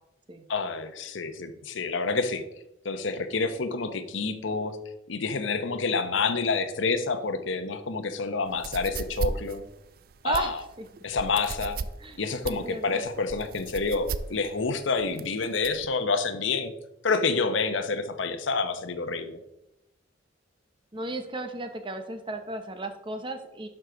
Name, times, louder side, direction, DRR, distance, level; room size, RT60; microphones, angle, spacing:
voice 1, 0.5-2.4 2.8-4.8 5.1-9.6 10.2-10.6 11.0-11.8 12.2-16.7 17.0-19.4, left 4 dB, 80° left, 9 dB, 0.8 m, -28 dB
sound 1, 8.5-15.9, right 4 dB, 50° right, 0.4 m, -36 dB
voice 2, 12.4-13.0 20.9-23.7, right 2 dB, 25° right, 7 dB, 0.8 m, -34 dB
11.5 x 4.8 x 3.8 m, 0.87 s
head